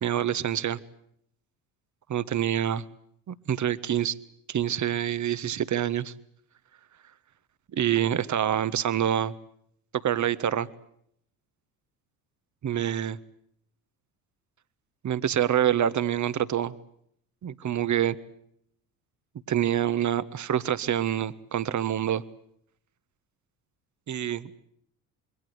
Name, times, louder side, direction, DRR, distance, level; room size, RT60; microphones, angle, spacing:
voice 1, 0.0-0.8 2.1-2.8 3.3-4.2 4.5-6.1 7.7-9.3 9.9-10.7 12.6-13.2 15.0-16.7 17.4-18.2 19.5-22.2 24.1-24.5, right 10 dB, 40° right, 15 dB, 1.4 m, -26 dB
27.0 x 23.0 x 8.1 m, 0.70 s
hypercardioid pair, 60°, 46 cm